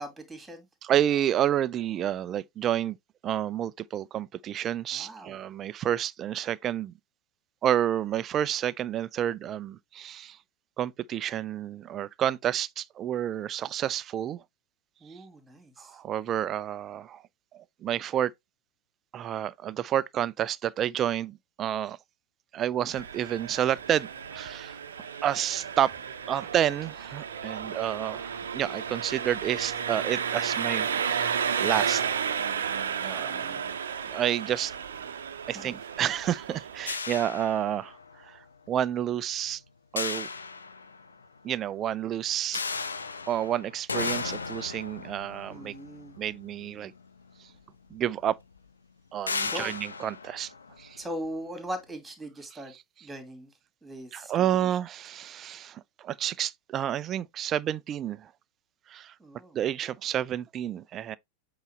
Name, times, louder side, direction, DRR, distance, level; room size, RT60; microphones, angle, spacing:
voice 1, 0.0-0.7 4.9-5.4 15.0-16.0 33.2-33.7 35.5-35.8 45.5-46.1 49.5-49.7 51.0-52.7 53.0-53.5 53.8-54.5 59.2-59.6, equal, 10° right, 2.5 m, -40 dB
voice 2, 0.8-3.0 3.2-6.9 7.6-10.4 10.8-14.4 15.8-17.2 17.8-18.3 19.1-22.0 22.5-24.8 25.2-25.9 26.3-32.0 33.0-33.3 34.1-34.7 35.5-38.0 38.2-39.6 39.9-40.3 41.4-42.6 43.3-45.7 46.2-46.9 47.9-48.4 49.1-50.5 50.8-51.0 54.1-58.3 58.9-59.1 59.5-61.2, right 10 dB, 30° right, 0.4 m, -29 dB
Engine, 22.9-36.9, right 7 dB, 65° right, 0.7 m, -33 dB
sound 1, 36.9-38.2 40.0-41.2 42.5-47.0 47.9-48.0 48.4-48.6 49.3-51.2, left 4 dB, 75° left, 0.7 m, -35 dB
8.1 x 3.9 x 3.2 m
figure-of-eight pair, 90°, 0 cm